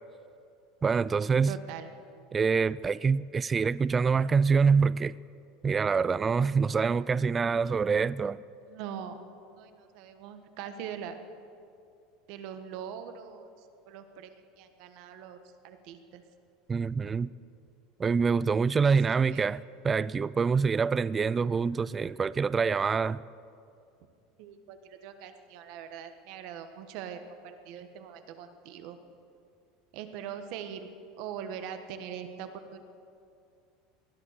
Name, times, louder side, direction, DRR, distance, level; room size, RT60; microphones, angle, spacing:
voice 1, 0.8-1.5 2.3-5.1 5.6-8.4 16.7-17.3 18.0-23.2, right 5 dB, 25° right, 19 dB, 0.3 m, -26 dB
voice 2, 1.5-1.9 8.6-9.2 9.6-11.2 12.3-15.4 15.6-16.2 18.8-19.5 24.4-29.0 29.9-30.9 31.2-32.8, right 8 dB, 65° right, 8 dB, 1.4 m, -42 dB
19.0 x 11.0 x 6.8 m, 2.5 s
supercardioid pair, 115°, 0 cm